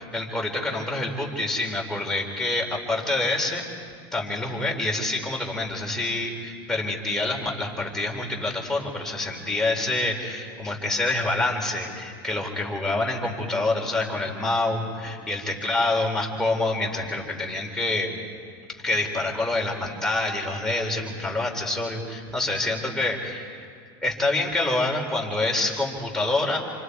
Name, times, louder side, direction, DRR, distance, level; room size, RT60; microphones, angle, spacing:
voice 1, 0.0-3.6 4.1-18.1 18.8-23.7 24.0-26.6, left 2 dB, 5° left, -1 dB, 4.0 m, -27 dB
29.5 x 25.0 x 4.8 m, 2.2 s
supercardioid pair, 125°, 13 cm